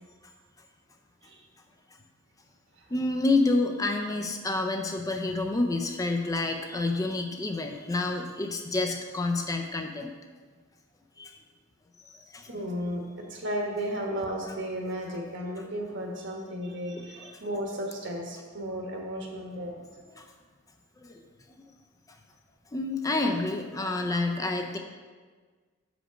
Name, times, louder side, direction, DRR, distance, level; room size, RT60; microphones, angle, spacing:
voice 1, 2.9-10.1 11.2-11.4 12.1-12.5 14.4-14.5 17.2-17.3 20.1-20.3 21.0-21.2 22.7-24.8, left 2 dB, 15° left, 4 dB, 0.4 m, -28 dB
voice 2, 12.5-19.9, equal, 60° right, 0 dB, 1.2 m, -34 dB
6.2 x 5.1 x 4.9 m, 1.5 s
head